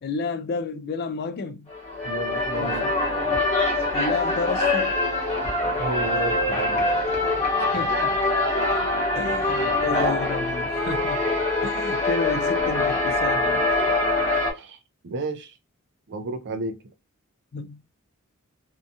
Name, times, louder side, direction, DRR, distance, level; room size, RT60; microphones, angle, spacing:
voice 1, 0.0-1.7 2.6-2.9 3.9-4.9 7.7-8.1 9.2-11.2 11.6-13.7 17.5-17.8, left 4 dB, 45° left, 0.3 m, -31 dB
sound 1, 1.7-14.5, left 2 dB, 30° left, 1.0 m, -24 dB
voice 2, 2.0-2.9 5.7-7.0 7.8-7.9 14.5-15.6 16.1-16.8, right 2 dB, 50° right, 0.5 m, -33 dB
2.7 x 2.2 x 2.6 m
head